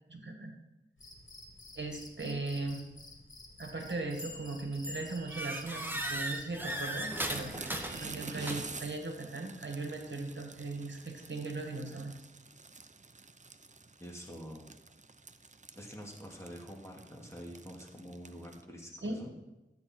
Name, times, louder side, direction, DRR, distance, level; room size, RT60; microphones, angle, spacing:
voice 1, 0.1-0.5 1.8-2.9 3.6-12.1 19.0-19.1, right 3 dB, 65° right, 2 dB, 1.8 m, -38 dB
Cricket, 1.0-8.2, left 2 dB, 85° left, 2.3 m, -53 dB
sound 1, 4.2-4.5 4.8-8.9, right 1 dB, 10° right, 1.2 m, -38 dB
sound 2, 5.6-18.6, right 3 dB, 35° right, 0.6 m, -49 dB
voice 2, 14.0-14.7 15.8-19.3, equal, 15° left, -1 dB, 2.3 m, -47 dB
13.0 x 8.5 x 4.4 m, 1.0 s
wide cardioid pair, 65°, 20 cm